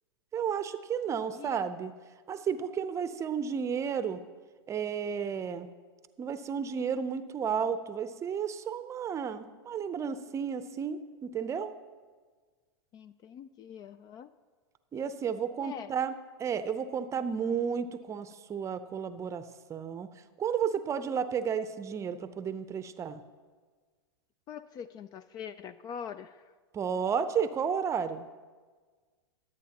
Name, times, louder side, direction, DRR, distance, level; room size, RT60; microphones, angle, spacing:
voice 1, 0.3-1.9 2.3-4.2 4.7-5.7 6.2-11.7 14.9-16.1 16.4-19.4 19.7-20.1 20.4-23.2 26.7-28.3, right 7 dB, 20° right, 12 dB, 0.6 m, -32 dB
voice 2, 1.3-1.7 12.9-14.3 15.6-15.9 24.5-26.5, left 8 dB, 30° left, 14 dB, 0.4 m, -43 dB
21.5 x 8.4 x 2.9 m, 1.5 s
hypercardioid pair, 110°, 13 cm